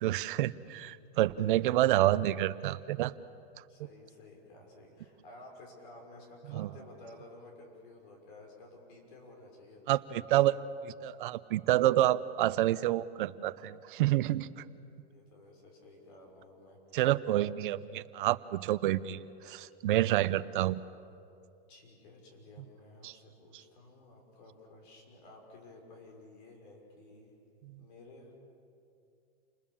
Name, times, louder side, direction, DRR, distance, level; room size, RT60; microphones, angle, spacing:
voice 1, 0.0-3.1 6.5-6.7 9.9-14.6 16.9-20.8 23.0-23.1 27.6-27.8, right 14 dB, 55° right, 15 dB, 0.8 m, -28 dB
voice 2, 3.7-10.0 15.0-17.0 21.7-27.3 27.8-28.4, left 2 dB, 50° left, 1 dB, 6.2 m, -53 dB
28.5 x 20.5 x 7.2 m, 2.5 s
hypercardioid pair, 140°, 32 cm